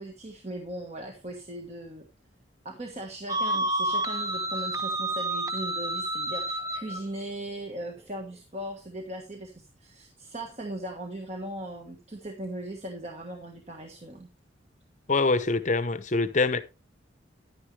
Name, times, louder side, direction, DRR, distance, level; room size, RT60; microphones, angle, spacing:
voice 1, 0.0-2.1 2.6-14.3, right 1 dB, 35° right, 1.4 m, -38 dB
sound 1, 3.3-7.0, right 1 dB, 20° right, 0.8 m, -29 dB
voice 2, 15.1-16.6, left 3 dB, 40° left, 0.8 m, -24 dB
10.5 x 9.9 x 3.3 m
head